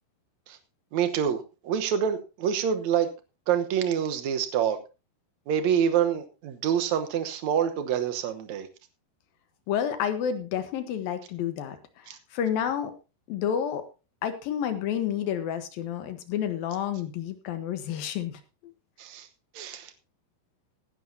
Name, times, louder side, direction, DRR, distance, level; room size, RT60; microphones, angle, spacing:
voice 1, 0.9-3.1 3.5-4.8 5.5-8.7 12.1-12.2 19.0-19.3 19.6-19.9, right 8 dB, 70° right, 8 dB, 1.7 m, -26 dB
voice 2, 9.7-12.9 13.3-13.8 14.2-18.7, left 9 dB, 70° left, 9 dB, 2.7 m, -30 dB
17.5 x 11.0 x 2.7 m, 0.30 s
omnidirectional pair, 4.8 m